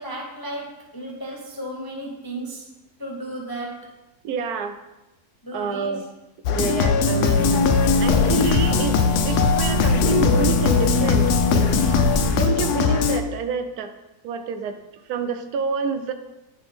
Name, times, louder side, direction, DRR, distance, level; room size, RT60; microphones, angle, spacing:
voice 1, 0.0-2.7 3.0-4.0 5.4-6.0 11.7-12.2, right 1 dB, 25° left, -2 dB, 0.4 m, -35 dB
voice 2, 4.2-4.8 5.5-6.1 6.4-7.7 8.0-11.3 12.2-13.9 14.2-14.8 15.1-16.1, right 5 dB, 75° right, 8 dB, 1.1 m, -28 dB
sound 1, 6.5-13.2, left 6 dB, 90° left, 1.1 m, -20 dB
sound 2, 7.3-12.3, left 1 dB, 40° left, 1.4 m, -23 dB
10.0 x 3.9 x 3.4 m, 0.98 s
omnidirectional pair, 1.6 m